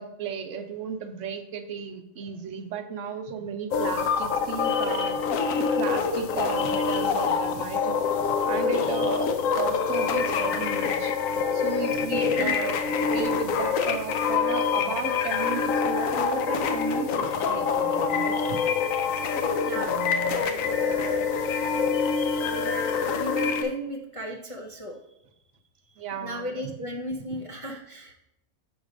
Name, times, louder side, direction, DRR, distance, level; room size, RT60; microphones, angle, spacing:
voice 1, 0.0-5.2 5.8-8.0 8.2-9.3 9.6-11.1 11.5-12.8 13.1-18.6 19.7-20.5 26.0-26.7, right 6 dB, 65° right, 7 dB, 0.9 m, -35 dB
sound 1, 3.7-23.6, left 5 dB, 75° left, 1.0 m, -26 dB
voice 2, 12.4-12.9 19.6-19.9 20.3-21.9 22.4-25.0 25.9-28.1, equal, 40° left, -1 dB, 0.5 m, -36 dB
7.1 x 3.9 x 5.1 m, 0.86 s
omnidirectional pair, 1.4 m